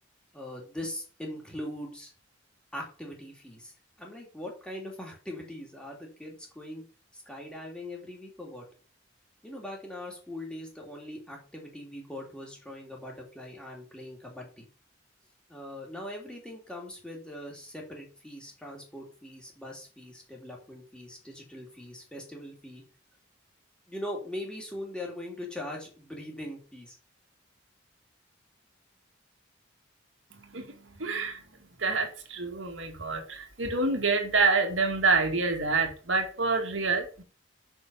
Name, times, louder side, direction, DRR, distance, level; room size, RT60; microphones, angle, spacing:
voice 1, 0.3-2.1 2.7-6.8 7.1-8.6 9.4-14.7 15.5-22.8 23.9-27.0, left 1 dB, 5° left, 3.1 m, -41 dB
voice 2, 30.3-31.4 31.8-37.2, right 4 dB, 90° right, 2.2 m, -27 dB
6.7 x 6.4 x 7.0 m
head